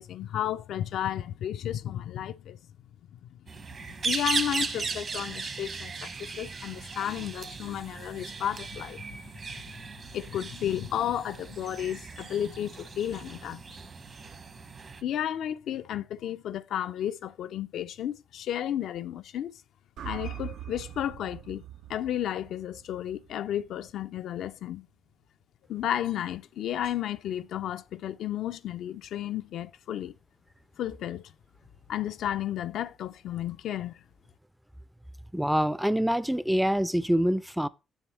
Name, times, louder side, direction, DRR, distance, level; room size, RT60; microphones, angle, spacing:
voice 1, 0.0-2.6 3.1-3.4 3.8-9.0 10.1-13.6 15.0-19.5 20.0-21.6 21.9-24.9 25.7-30.1 30.8-31.3 31.9-34.0, left 11 dB, 75° left, 0.4 m, -33 dB
sound 1, 3.5-15.0, right 4 dB, 45° right, 1.0 m, -37 dB
sound 2, 20.0-24.2, right 12 dB, 80° right, 0.4 m, -43 dB
voice 2, 35.3-37.7, equal, 5° right, 0.4 m, -25 dB
7.1 x 6.8 x 3.1 m
cardioid pair, 90°, 0 cm